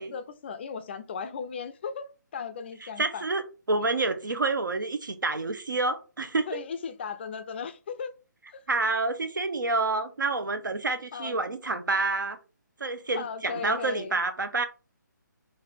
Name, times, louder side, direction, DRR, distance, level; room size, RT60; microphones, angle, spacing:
voice 1, 0.0-3.2 6.5-8.1 8.5-8.6 11.1-11.4 13.1-14.2, left 6 dB, 35° left, 0.4 m, -36 dB
voice 2, 2.8-6.6 8.7-12.4 12.8-14.7, right 3 dB, 80° right, 0.8 m, -28 dB
4.0 x 2.5 x 3.3 m
figure-of-eight pair, 145°, 10 cm